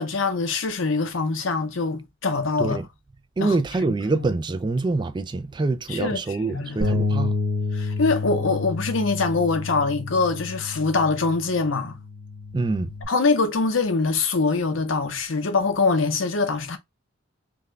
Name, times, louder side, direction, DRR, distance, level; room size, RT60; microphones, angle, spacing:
voice 1, 0.0-2.8 3.4-3.6 4.1-4.3 5.9-6.9 7.7-12.0 13.1-16.8, left 4 dB, 80° left, 0.8 m, -24 dB
voice 2, 3.4-7.4 12.5-12.9, right 3 dB, 25° right, 0.3 m, -25 dB
Bass guitar, 6.8-13.1, left 3 dB, 60° right, 0.9 m, -29 dB
3.5 x 2.3 x 3.2 m
head